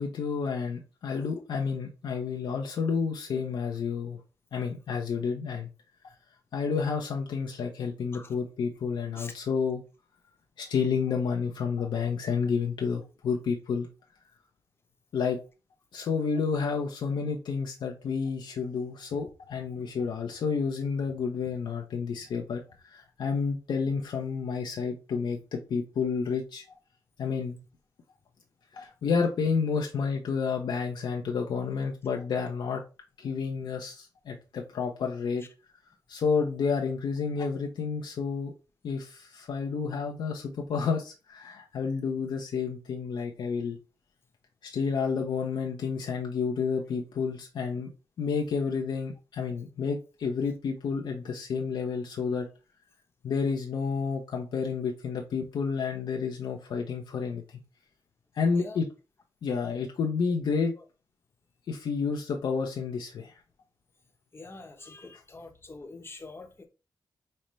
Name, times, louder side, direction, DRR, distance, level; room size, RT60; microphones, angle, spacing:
voice 1, 0.0-4.2 4.5-5.7 6.5-9.8 10.6-13.9 15.1-15.4 15.9-26.8 27.2-27.6 28.7-32.8 33.2-35.4 36.1-38.5 38.8-43.8 44.6-47.9 48.2-52.5 53.2-57.4 58.4-58.9 59.4-60.7 61.7-63.3, left 5 dB, 75° left, 0.7 m, -30 dB
voice 2, 64.3-66.7, left 3 dB, 30° left, 0.9 m, -45 dB
5.4 x 2.1 x 3.1 m
cardioid pair, 70°, 8 cm